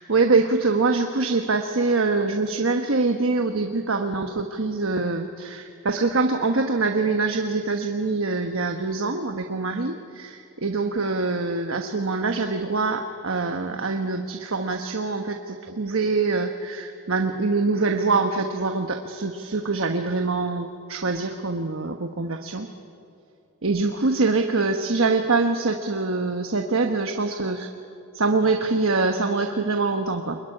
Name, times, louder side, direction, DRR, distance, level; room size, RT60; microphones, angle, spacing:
voice 1, 0.0-22.7 23.6-27.7 28.1-30.4, right 3 dB, 65° right, 5 dB, 1.3 m, -24 dB
27.0 x 22.0 x 10.0 m, 2.6 s
head